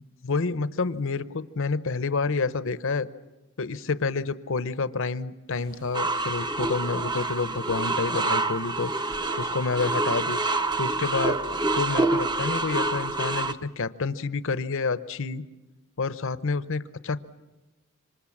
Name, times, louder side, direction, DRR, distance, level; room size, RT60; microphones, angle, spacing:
voice 1, 0.2-3.1 3.6-10.4 10.8-11.4 11.7-15.4 16.0-17.2, left 4 dB, 65° left, 14 dB, 0.9 m, -29 dB
Water, 5.5-13.6, right 1 dB, 80° right, 7.2 m, -53 dB
sound 1, 5.9-13.5, right 3 dB, 20° right, 0.8 m, -27 dB
26.5 x 25.5 x 7.3 m, 1.1 s
head